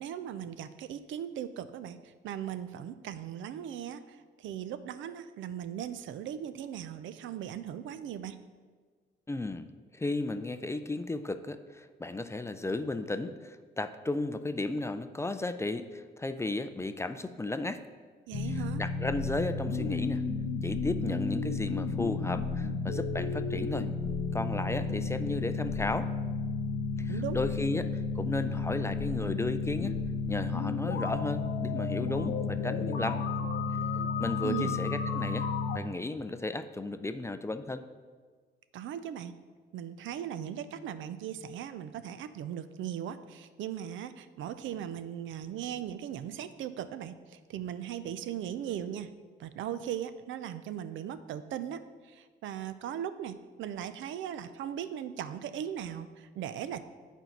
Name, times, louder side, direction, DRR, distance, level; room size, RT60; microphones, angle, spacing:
voice 1, 0.0-8.4 18.3-18.8 27.1-27.4 34.4-34.8 38.7-39.3 39.7-49.1 49.4-56.9, right 10 dB, 80° right, 12 dB, 0.5 m, -38 dB
voice 2, 9.3-9.7 9.9-17.8 18.5-20.2 20.6-23.9 24.3-26.1 27.0-30.0 30.3-33.2 34.2-35.5 35.7-37.8, left 2 dB, 15° left, 10 dB, 0.4 m, -34 dB
sound 1, 18.3-35.8, left 4 dB, 60° left, 0.6 m, -32 dB
8.0 x 4.5 x 5.8 m, 1.5 s
cardioid pair, 90°, 20 cm